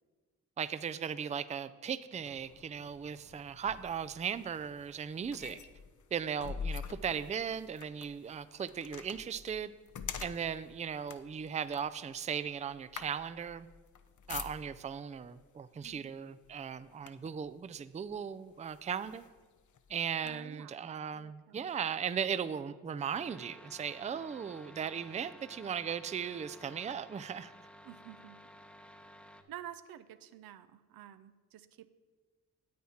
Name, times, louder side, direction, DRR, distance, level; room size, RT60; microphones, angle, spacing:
voice 1, 0.6-5.6 6.1-9.7 10.2-13.7 14.3-19.2 19.9-27.5, right 7 dB, 20° right, 14 dB, 0.4 m, -37 dB
sound 1, 2.2-15.0 15.8-16.1 16.4-17.5 18.1-18.2 18.6-20.3, left 6 dB, 55° left, 0.7 m, -46 dB
voice 2, 20.2-20.8 21.1-21.7 27.8-28.4 29.5-31.9, right 12 dB, 75° right, 12 dB, 0.5 m, -50 dB
sound 2, 23.1-29.4, equal, 5° left, 0.8 m, -55 dB
9.5 x 8.3 x 4.3 m, 1.4 s
supercardioid pair, 50°, 36 cm